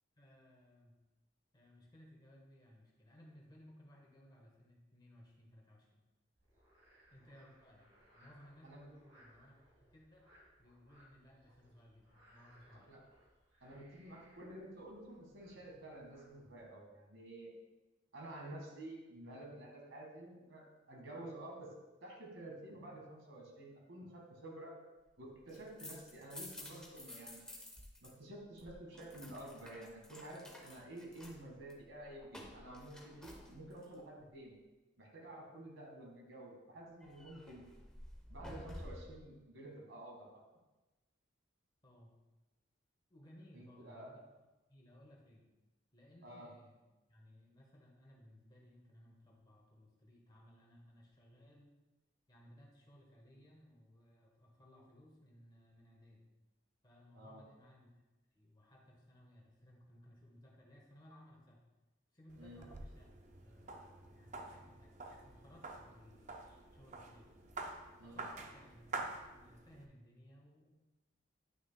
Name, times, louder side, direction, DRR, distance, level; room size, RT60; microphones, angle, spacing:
voice 1, 0.2-1.0 1.5-6.0 7.1-9.5 9.8-10.3 10.6-12.9 41.8-42.2 43.1-44.4 44.7-45.4 45.9-46.8 47.1-51.8 52.3-56.3 56.8-57.9 58.3-61.6 62.1-63.1 63.4-67.3 68.0-70.7, equal, 20° left, -1 dB, 1.2 m, -61 dB
Frog, 6.4-16.6, equal, 60° right, 2.1 m, -68 dB
voice 2, 13.6-17.5 18.1-21.7 22.0-24.7 25.2-27.4 28.0-34.5 35.0-37.6 38.3-40.4 43.5-44.1 46.2-46.5 57.1-57.4 62.4-62.6 68.0-68.2, right 1 dB, 80° right, -1 dB, 1.7 m, -51 dB
sound 1, 25.3-28.1 28.4-33.9 37.0-39.2, left 1 dB, 5° left, 0.7 m, -52 dB
sound 2, 62.3-69.9, right 3 dB, 40° right, 0.5 m, -48 dB
9.5 x 6.0 x 2.2 m, 1.1 s
head